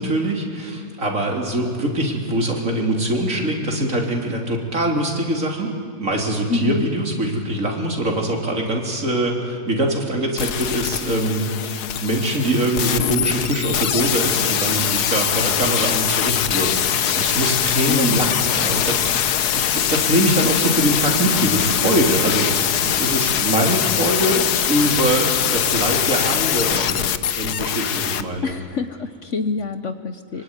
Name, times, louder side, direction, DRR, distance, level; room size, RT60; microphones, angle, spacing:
voice 1, 0.0-5.7 6.0-27.0 27.4-28.5, right 1 dB, 50° right, 1 dB, 3.8 m, -23 dB
voice 2, 6.5-6.9 17.9-18.4 28.4-30.4, left 4 dB, 55° left, 10 dB, 1.2 m, -26 dB
sound 1, 10.4-28.2 28.5-28.6, left 9 dB, 75° left, 1.4 m, -22 dB
24.5 x 24.5 x 9.7 m, 2.1 s
omnidirectional pair, 1.7 m